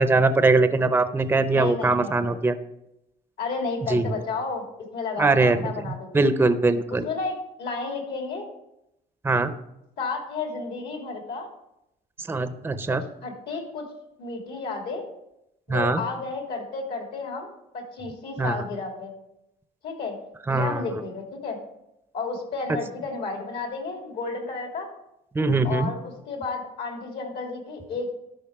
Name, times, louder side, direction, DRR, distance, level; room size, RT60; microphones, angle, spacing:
voice 1, 0.0-2.6 3.9-4.1 5.2-5.7 6.1-7.0 9.2-9.5 12.3-13.0 15.7-16.0 18.4-18.6 20.5-20.8 25.4-25.9, right 3 dB, 15° right, 11 dB, 0.6 m, -21 dB
voice 2, 1.5-2.4 3.4-4.6 4.9-6.2 6.9-8.5 10.0-11.5 12.9-13.8 14.2-15.0 15.7-19.1 19.8-20.2 20.5-21.6 22.1-24.9 25.4-28.1, left 4 dB, 70° left, 2 dB, 2.9 m, -32 dB
12.5 x 5.2 x 4.7 m, 0.84 s
cardioid pair, 110°, 17 cm